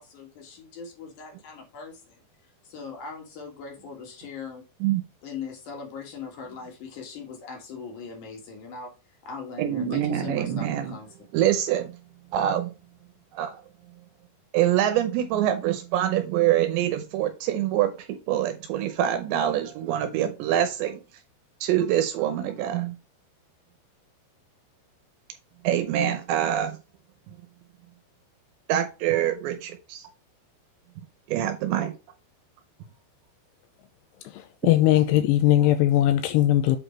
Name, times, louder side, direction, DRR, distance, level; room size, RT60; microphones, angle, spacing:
voice 1, 0.0-2.2 2.6-4.6 5.2-8.9 9.2-11.1, left 5 dB, 55° left, 2.4 m, -40 dB
voice 2, 9.6-11.0 11.3-12.0 12.3-12.7 13.3-13.6 14.5-21.0 21.6-23.0 25.6-26.8 27.3-27.4 28.7-30.1 31.0-32.0, right 11 dB, 80° right, 2.9 m, -25 dB
voice 3, 34.6-36.8, left 13 dB, 85° left, 2.5 m, -19 dB
8.0 x 4.3 x 4.4 m
omnidirectional pair, 5.3 m